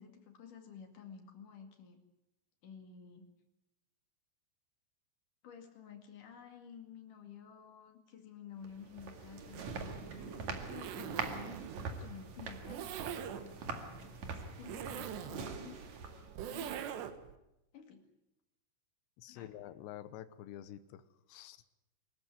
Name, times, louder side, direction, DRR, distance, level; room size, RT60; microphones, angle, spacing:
voice 1, 0.0-2.0 2.6-3.3 5.4-15.8 16.5-16.9 17.7-18.0 19.3-19.5, left 7 dB, 50° left, 5 dB, 3.1 m, -52 dB
sound 1, 8.6-16.4, right 4 dB, 50° right, 2.4 m, -44 dB
Zipper (clothing), 9.4-17.4, right 9 dB, 70° right, 3.1 m, -44 dB
voice 2, 19.2-21.0 21.3-21.6, left 12 dB, 75° left, 12 dB, 2.9 m, -48 dB
25.0 x 14.0 x 9.9 m, 0.91 s
omnidirectional pair, 5.9 m